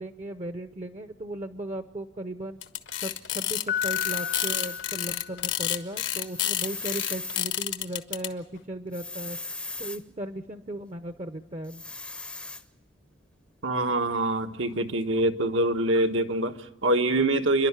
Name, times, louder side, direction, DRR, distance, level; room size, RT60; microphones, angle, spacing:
voice 1, 0.0-2.6 3.0-9.4 9.8-11.8, right 1 dB, 35° right, 10 dB, 0.7 m, -37 dB
sound 1, 2.6-8.3, left 12 dB, 75° left, 1.2 m, -29 dB
Piano, 3.7-5.8, left 9 dB, 45° left, 0.8 m, -33 dB
sound 2, 3.8-4.8 6.2-7.4 8.9-10.0 11.7-12.6, left 2 dB, 5° left, 0.6 m, -38 dB
voice 2, 13.6-17.7, right 1 dB, 80° right, 6 dB, 1.4 m, -25 dB
28.5 x 11.5 x 9.7 m, 1.0 s
head